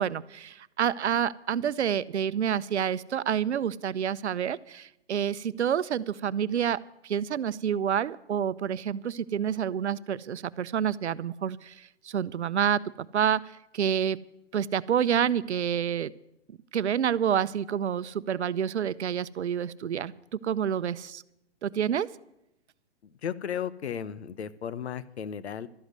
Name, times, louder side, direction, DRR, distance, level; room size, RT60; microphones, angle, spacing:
voice 1, 0.0-6.8 7.0-12.8 13.1-13.4 13.7-14.2 14.5-16.1 16.7-20.1 20.4-21.2 21.6-22.1, right 8 dB, 80° right, 16 dB, 0.7 m, -28 dB
voice 2, 23.0-25.7, left 8 dB, 70° left, 15 dB, 1.0 m, -35 dB
13.0 x 8.0 x 9.5 m, 0.82 s
hypercardioid pair, 135°, 33 cm